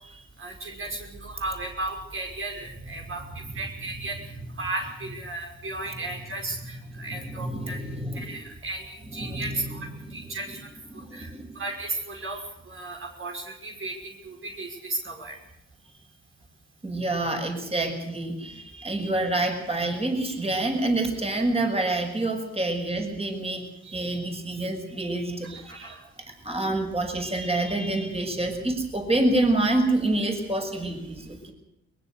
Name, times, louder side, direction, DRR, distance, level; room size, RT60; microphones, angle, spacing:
voice 1, 0.4-4.3 4.6-7.8 8.1-10.7 11.1-15.4 25.7-26.1, right 2 dB, 45° right, 1 dB, 5.9 m, -35 dB
voice 2, 7.0-8.4 9.1-9.7 10.0-10.2 10.9-11.6 16.8-31.5, right 2 dB, 20° right, 3 dB, 6.7 m, -27 dB
23.0 x 21.5 x 6.7 m, 0.81 s
cardioid pair, 90°, 30 cm